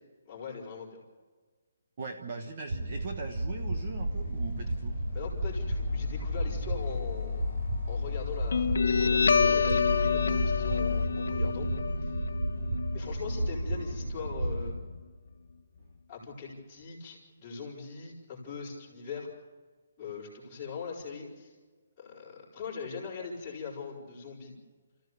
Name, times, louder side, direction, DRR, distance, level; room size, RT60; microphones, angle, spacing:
voice 1, 0.3-1.0 5.1-7.4 7.9-11.7 12.9-14.8 16.1-19.3 20.0-21.5 22.0-24.5, left 5 dB, 10° left, -7 dB, 4.6 m, -41 dB
voice 2, 2.0-5.0, right 4 dB, 30° right, 3 dB, 1.2 m, -40 dB
sound 1, 2.7-14.7, right 1 dB, 65° right, 3.7 m, -33 dB
sound 2, 3.6-11.1, left 12 dB, 35° left, 0.6 m, -37 dB
Guitar, 8.5-15.5, left 5 dB, 70° left, 1.1 m, -29 dB
29.5 x 15.0 x 6.8 m, 1.4 s
hypercardioid pair, 180°, 0 cm